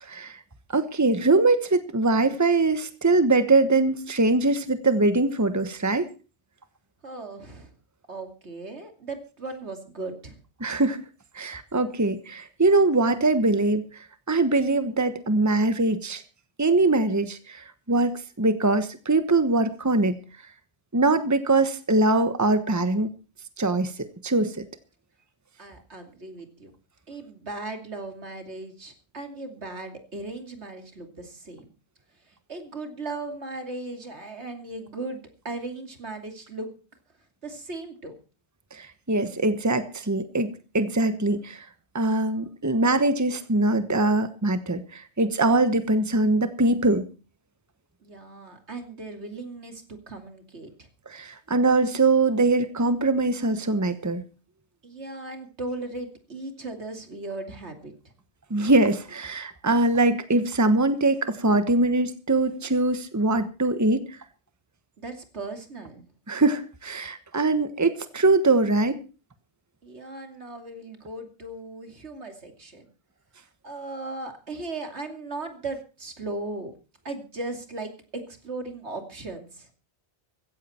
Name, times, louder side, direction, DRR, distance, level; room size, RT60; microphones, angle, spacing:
voice 1, 0.1-0.4 0.7-6.1 10.6-11.0 11.3-16.2 16.6-20.1 20.9-23.1 23.6-24.6 38.7-41.7 41.9-47.1 51.1-54.2 58.5-64.2 66.3-69.0, right 2 dB, 15° right, 10 dB, 1.2 m, -22 dB
voice 2, 7.0-7.7 8.1-10.4 25.6-26.7 27.1-31.7 32.3-36.7 37.4-38.1 48.0-50.9 54.8-57.9 65.0-66.0 69.8-72.9 73.6-76.7 77.0-79.7, right 2 dB, 80° right, 5 dB, 3.0 m, -37 dB
16.0 x 14.5 x 4.4 m, 0.34 s
omnidirectional pair, 1.1 m